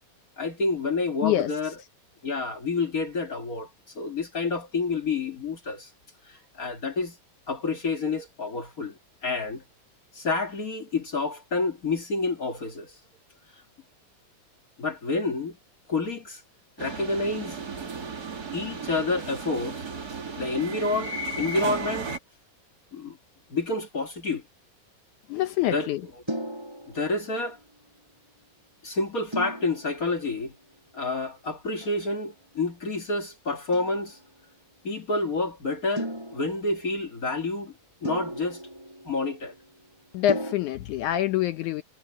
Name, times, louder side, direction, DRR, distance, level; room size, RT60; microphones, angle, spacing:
voice 1, 0.4-1.7 2.2-3.7 3.9-5.9 6.3-7.2 7.5-9.6 10.1-12.9 14.8-15.6 15.9-16.4 16.8-17.6 18.5-19.8 20.4-22.1 22.9-23.2 23.5-24.4 25.7-25.9 26.9-27.6 28.8-30.5 30.9-34.2 34.8-37.7 38.0-38.6 39.0-39.5, left 3 dB, 40° left, 1.4 m, -29 dB
voice 2, 1.2-1.5 25.3-26.0 40.1-41.8, left 13 dB, 75° left, 1.9 m, -25 dB
sound 1, 16.8-22.2, right 4 dB, 30° right, 2.4 m, -35 dB
sound 2, 26.3-27.6 29.3-30.4 31.8-32.3 33.7-34.2 36.0-37.1 38.0-39.7 40.3-40.5, right 1 dB, 5° right, 6.6 m, -36 dB
omnidirectional pair, 4.1 m